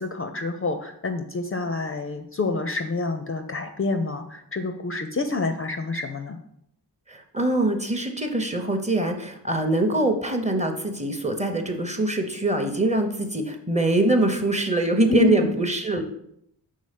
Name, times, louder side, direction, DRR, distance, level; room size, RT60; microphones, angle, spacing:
voice 1, 0.0-6.4 15.1-15.3, left 4 dB, 35° left, 6 dB, 0.4 m, -28 dB
voice 2, 7.1-16.0, right 2 dB, 15° right, 5 dB, 0.7 m, -23 dB
5.4 x 3.8 x 5.0 m, 0.74 s
wide cardioid pair, 110°, 42 cm